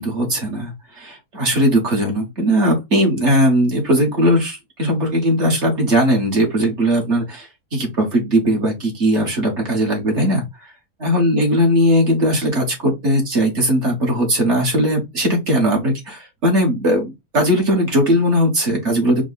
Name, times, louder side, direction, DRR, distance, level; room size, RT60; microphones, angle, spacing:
voice 1, 0.0-10.4 11.0-19.2, equal, 45° right, 1.8 m, -18 dB
4.7 x 2.4 x 4.0 m
omnidirectional pair, 1.7 m